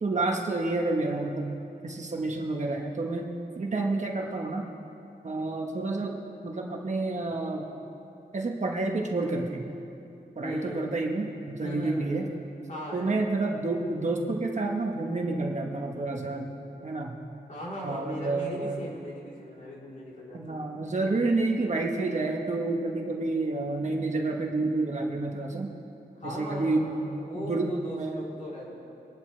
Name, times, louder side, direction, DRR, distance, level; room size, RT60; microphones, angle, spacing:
voice 1, 0.0-1.5 1.8-3.3 3.6-4.7 5.2-6.2 6.4-7.7 8.3-9.7 10.4-12.3 12.9-16.5 16.8-17.2 17.8-18.8 20.3-25.7 26.2-26.9 27.3-28.2, right 2 dB, 45° right, 1 dB, 1.3 m, -29 dB
voice 2, 10.4-10.9 11.6-12.1 12.7-13.2 17.5-20.6 26.2-28.7, equal, 50° left, -6 dB, 3.6 m, -38 dB
25.5 x 11.5 x 3.3 m, 2.7 s
wide cardioid pair, 160°, 17 cm